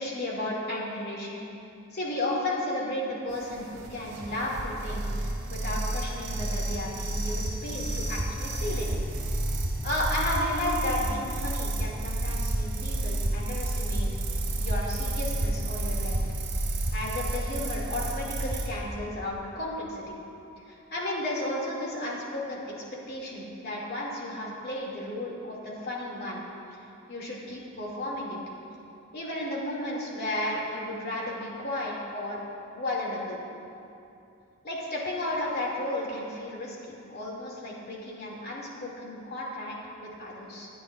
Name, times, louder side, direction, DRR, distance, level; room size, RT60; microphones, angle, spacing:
voice 1, 0.0-1.4 1.9-8.9 9.8-14.1 14.6-16.2 16.9-20.1 20.7-22.6 23.1-26.4 27.1-28.4 29.1-32.4 32.7-33.4 34.6-40.7, left 1 dB, 50° left, -3 dB, 2.4 m, -33 dB
sound 1, 3.3-18.7, right 1 dB, 55° right, 2.2 m, -30 dB
21.5 x 10.0 x 2.5 m, 2.7 s
head